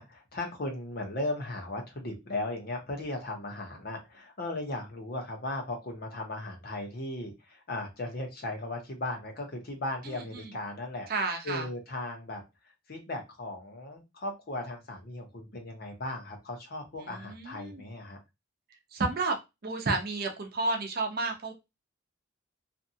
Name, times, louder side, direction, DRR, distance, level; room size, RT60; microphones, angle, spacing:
voice 1, 0.0-11.1 11.4-12.4 12.9-18.2, left 2 dB, 50° left, 3 dB, 0.8 m, -37 dB
voice 2, 11.1-11.6 17.0-17.8 18.9-19.4 19.6-21.5, right 3 dB, 50° right, 4 dB, 0.6 m, -31 dB
2.6 x 2.3 x 2.6 m, 0.23 s
head